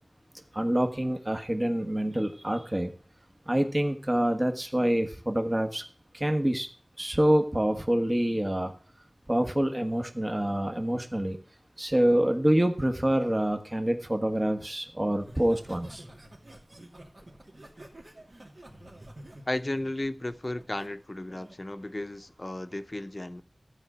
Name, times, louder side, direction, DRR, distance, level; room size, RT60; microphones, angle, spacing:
voice 1, 0.5-2.9 3.5-5.8 6.1-6.7 7.0-8.7 9.3-11.4 11.8-16.0, right 1 dB, 25° right, 1.3 m, -26 dB
Laughter, 15.2-20.9 21.3-21.6, right 1 dB, 65° right, 2.6 m, -49 dB
voice 2, 19.5-23.4, left 1 dB, 35° left, 0.7 m, -34 dB
14.0 x 4.9 x 8.0 m
wide cardioid pair, 60°, 0 cm